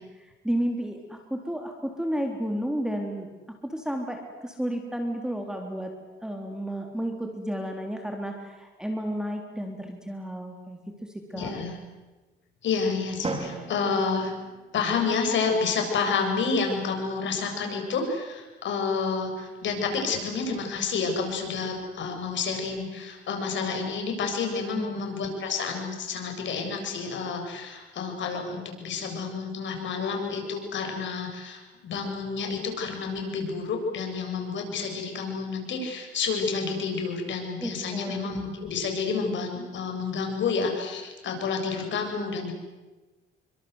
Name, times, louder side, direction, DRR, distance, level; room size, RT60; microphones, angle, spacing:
voice 1, 0.2-3.3 3.6-5.9 6.2-11.5 24.8-25.1 37.6-38.3, equal, 5° right, 3 dB, 3.7 m, -32 dB
voice 2, 11.3-11.8 12.6-14.3 14.7-42.5, left 5 dB, 70° left, 3 dB, 7.5 m, -29 dB
Drum, 13.2-15.2, right 3 dB, 30° right, 4.5 m, -36 dB
29.5 x 24.5 x 8.1 m, 1.2 s
cardioid pair, 90°, 20 cm